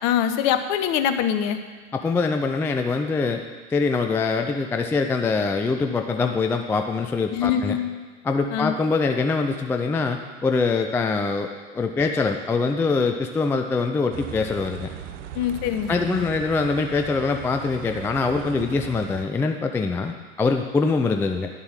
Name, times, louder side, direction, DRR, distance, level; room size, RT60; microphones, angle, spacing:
voice 1, 0.0-1.6 7.3-7.9 8.5-8.7 15.3-16.3, left 9 dB, 45° left, 9 dB, 1.0 m, -24 dB
voice 2, 1.9-3.4 3.7-7.8 8.2-14.9 15.9-21.5, left 4 dB, 5° left, 5 dB, 0.3 m, -24 dB
sound 1, 14.1-19.2, right 8 dB, 65° right, 0.9 m, -38 dB
10.5 x 7.3 x 7.3 m, 1.4 s
figure-of-eight pair, 90°, 40 cm